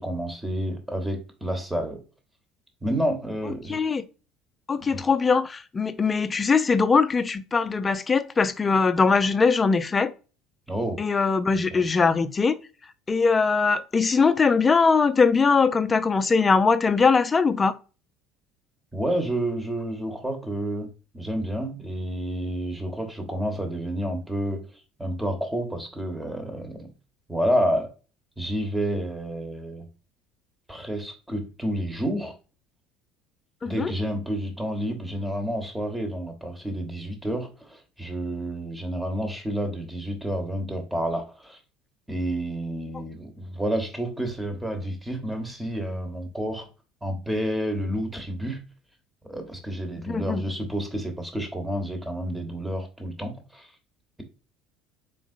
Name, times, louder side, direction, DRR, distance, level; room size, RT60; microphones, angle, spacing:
voice 1, 0.0-2.0 2.8-3.8 4.9-5.0 10.7-11.0 11.7-11.8 18.9-26.9 27.3-27.9 28.4-29.9 30.7-32.4 33.6-41.6 42.1-46.7 47.0-48.6 49.3-53.7, equal, 10° right, 1.2 m, -29 dB
voice 2, 3.7-4.1 4.7-10.1 11.0-12.6 13.1-17.7 33.6-33.9 50.1-50.4, left 4 dB, 25° left, 0.5 m, -21 dB
3.8 x 3.7 x 2.6 m
hypercardioid pair, 70°, 0 cm